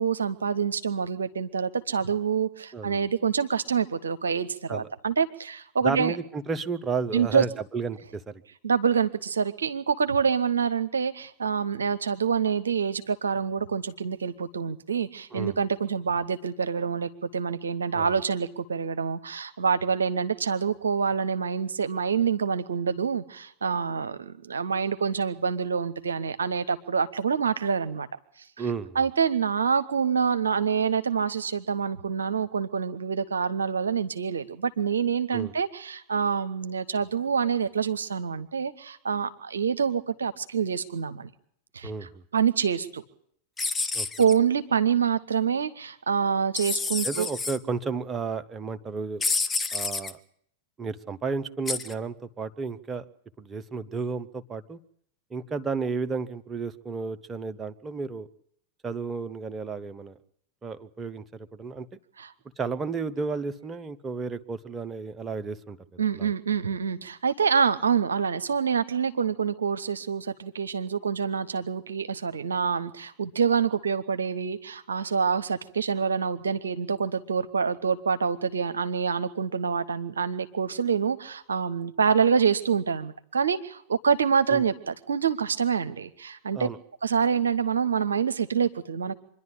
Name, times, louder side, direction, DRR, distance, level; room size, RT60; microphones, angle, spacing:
voice 1, 0.0-6.2 7.1-7.4 8.6-28.1 28.6-28.7 28.9-41.3 41.7-43.0 44.2-47.3 62.2-62.3 66.0-86.7 87.0-89.2, right 6 dB, 70° right, 11 dB, 0.8 m, -26 dB
voice 2, 2.7-3.0 4.7-4.9 5.8-8.3 15.3-15.5 17.9-18.1 28.6-29.0 35.3-35.5 41.8-42.1 43.9-44.1 47.0-49.2 49.7-50.2 50.8-53.0 53.4-54.8 55.3-58.3 58.8-60.1 60.6-61.9 62.6-66.3 84.5-84.6 86.5-86.8, right 4 dB, 20° right, 10 dB, 1.0 m, -32 dB
sound 1, 43.6-44.3 46.6-47.6 49.2-50.1 51.7-51.9, left 4 dB, 15° left, 1.1 m, -29 dB
25.0 x 11.0 x 10.0 m, 0.67 s
figure-of-eight pair, 90°, 0 cm